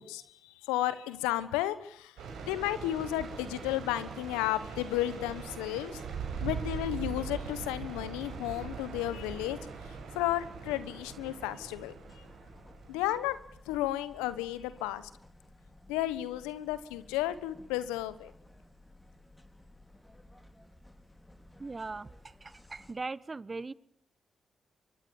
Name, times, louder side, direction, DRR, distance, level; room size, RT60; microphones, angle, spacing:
voice 1, 0.0-2.1 2.5-6.0 6.4-9.6 10.1-11.9 12.9-13.4 13.7-15.1 15.9-18.3, left 14 dB, 85° left, 15 dB, 1.2 m, -33 dB
sound 1, 2.2-13.1, right 5 dB, 75° right, 6.1 m, -41 dB
sound 2, 8.1-22.9, left 1 dB, 15° left, 4.5 m, -56 dB
voice 2, 21.6-23.7, right 3 dB, 35° right, 20 dB, 1.1 m, -40 dB
26.5 x 23.5 x 7.2 m, 0.63 s
hypercardioid pair, 40°, 0 cm